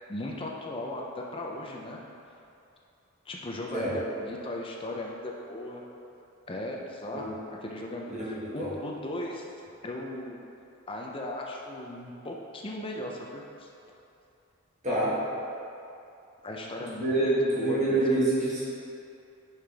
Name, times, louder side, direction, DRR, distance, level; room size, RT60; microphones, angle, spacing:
voice 1, 0.1-2.0 3.3-5.8 6.5-8.1 8.5-9.5 9.8-10.4 10.9-13.7 16.4-18.0, left 1 dB, 25° left, -1 dB, 0.5 m, -37 dB
voice 2, 8.1-8.7 14.8-15.1 17.0-18.6, right 2 dB, 35° right, -9 dB, 1.5 m, -26 dB
5.7 x 5.0 x 3.5 m, 2.7 s
head